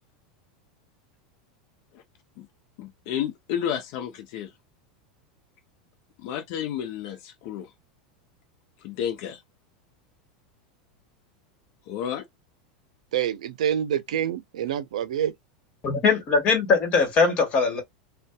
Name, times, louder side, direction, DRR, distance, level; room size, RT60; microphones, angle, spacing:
voice 1, 2.8-4.5 6.2-7.7 8.8-9.4 11.9-12.2, left 9 dB, 60° left, 0.6 m, -31 dB
voice 2, 13.1-15.3, right 10 dB, 80° right, 0.4 m, -27 dB
voice 3, 15.8-17.8, left 4 dB, 40° left, 1.4 m, -21 dB
2.6 x 2.2 x 2.2 m
hypercardioid pair, 105°, 4 cm